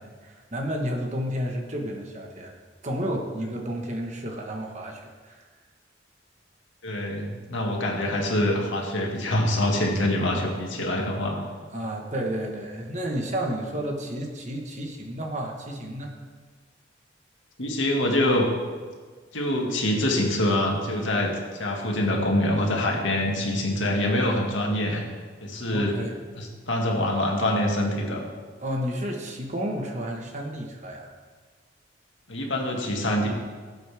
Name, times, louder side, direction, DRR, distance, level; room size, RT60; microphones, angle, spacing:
voice 1, 0.0-2.5 2.8-5.4 11.7-16.1 25.7-26.2 28.6-31.1, equal, 35° right, 1 dB, 1.4 m, -31 dB
voice 2, 6.8-11.4 17.6-18.5 19.3-21.3 21.6-25.0 25.4-26.0 26.4-28.3 32.3-33.3, left 1 dB, 75° left, 0 dB, 2.0 m, -25 dB
17.0 x 8.1 x 3.6 m, 1.5 s
head